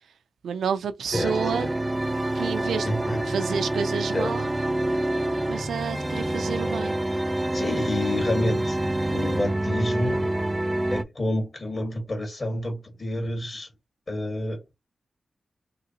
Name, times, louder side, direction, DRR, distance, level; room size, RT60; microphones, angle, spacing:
voice 1, 0.4-1.7 2.3-2.9 3.3-4.5 5.5-7.0, right 6 dB, 90° right, 0.4 m, -29 dB
sound 1, 1.1-11.0, right 1 dB, 20° right, 0.5 m, -27 dB
voice 2, 2.9-3.6 4.1-4.4 7.5-8.8 9.1-10.3 10.9-13.7 14.1-14.6, left 1 dB, 50° left, 2.0 m, -29 dB
3.7 x 2.8 x 2.9 m
cardioid pair, 40°, 0 cm